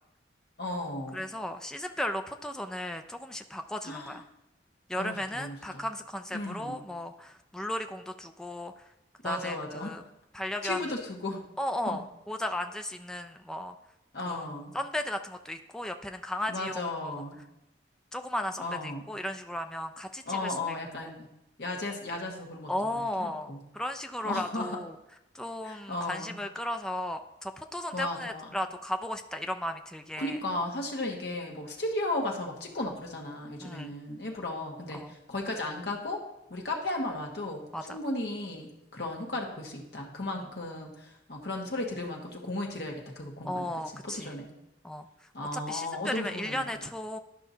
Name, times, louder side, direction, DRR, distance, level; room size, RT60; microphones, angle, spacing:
voice 1, 0.6-1.2 3.8-4.2 5.0-5.8 6.3-6.8 9.2-10.0 10.6-11.4 11.9-12.0 14.1-14.7 16.5-17.4 18.6-19.1 20.3-21.3 21.6-23.6 24.2-24.8 25.6-26.3 27.9-28.5 30.2-36.2 36.5-43.7 44.0-44.5 45.3-46.6, left 2 dB, 65° left, 1 dB, 1.4 m, -35 dB
voice 2, 1.1-4.2 4.9-8.9 9.2-10.0 10.3-10.8 11.6-13.8 14.3-14.4 14.7-17.2 18.1-21.1 22.7-24.9 25.3-30.4 33.6-33.9 34.9-35.1 37.7-38.0 40.4-40.5 43.4-44.4 44.8-45.1 45.5-47.2, left 1 dB, 5° left, 5 dB, 0.3 m, -35 dB
11.5 x 5.6 x 2.7 m, 0.90 s
head